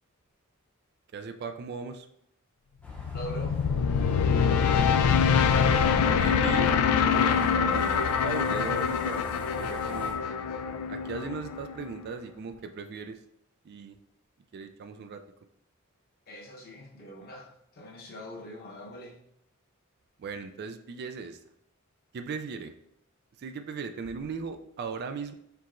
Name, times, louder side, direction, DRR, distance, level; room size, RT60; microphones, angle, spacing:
voice 1, 1.1-2.1 6.2-6.8 7.1-9.3 9.6-10.2 10.9-13.2 13.7-14.0 14.5-15.2 20.2-21.4 22.1-22.7 23.4-25.3, right 5 dB, 50° right, 8 dB, 0.3 m, -38 dB
sound 1, 2.8-10.1, equal, 5° left, 0.7 m, -46 dB
sound 2, 2.9-12.0, left 6 dB, 85° left, 0.3 m, -25 dB
voice 2, 3.1-3.6 4.7-5.1 16.3-19.1, equal, 45° left, -1 dB, 0.9 m, -42 dB
4.5 x 4.0 x 2.5 m, 0.74 s
head